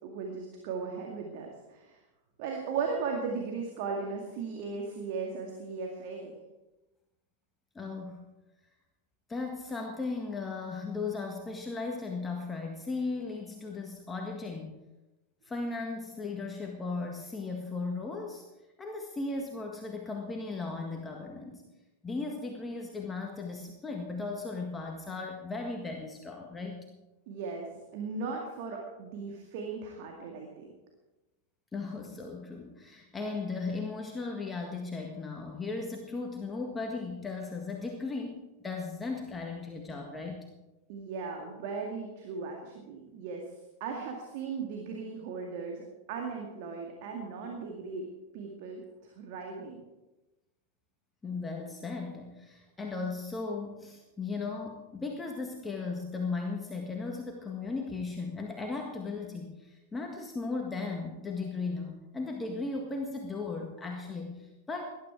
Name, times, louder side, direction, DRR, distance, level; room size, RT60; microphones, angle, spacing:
voice 1, 0.0-2.0 2.4-6.3 27.3-30.7 40.9-43.4 43.8-48.1 48.3-49.8, right 5 dB, 50° right, 1 dB, 2.2 m, -37 dB
voice 2, 7.8-8.2 9.3-14.7 15.4-18.4 18.8-21.7 22.0-26.8 31.7-40.5 51.2-65.0, left 3 dB, 15° left, 1 dB, 1.7 m, -36 dB
19.0 x 12.0 x 4.7 m, 1.1 s
figure-of-eight pair, 90°, 0 cm